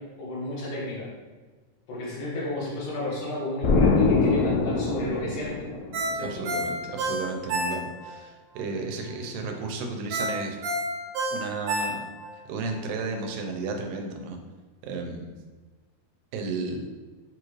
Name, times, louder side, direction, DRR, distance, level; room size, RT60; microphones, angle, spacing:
voice 1, 0.2-1.1 1.9-5.7 6.1-6.3, left 1 dB, 70° left, -7 dB, 2.6 m, -32 dB
Explosion, 3.6-6.3, left 3 dB, 90° left, 1.6 m, -23 dB
Ringtone, 5.9-8.2 8.6-8.7 10.1-12.3 12.7-12.8, right 1 dB, 70° right, 2.2 m, -29 dB
voice 2, 6.2-10.6 11.3-12.1 12.5-14.4 14.8-15.3 16.3-16.9, right 3 dB, 90° right, 3 dB, 2.3 m, -33 dB
6.7 x 2.4 x 3.1 m, 1.3 s
omnidirectional pair, 3.9 m